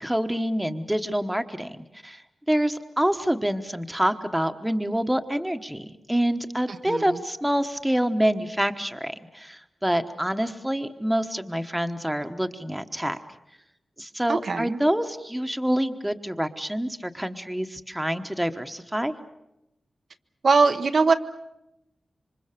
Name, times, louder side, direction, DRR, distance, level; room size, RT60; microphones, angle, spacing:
voice 1, 0.0-2.2 2.5-13.2 14.0-19.1, equal, 5° right, 7 dB, 1.2 m, -27 dB
voice 2, 6.7-7.2 14.3-14.8 20.4-21.1, right 4 dB, 65° right, 7 dB, 1.0 m, -22 dB
27.0 x 25.5 x 6.8 m, 0.88 s
wide cardioid pair, 115°, 0 cm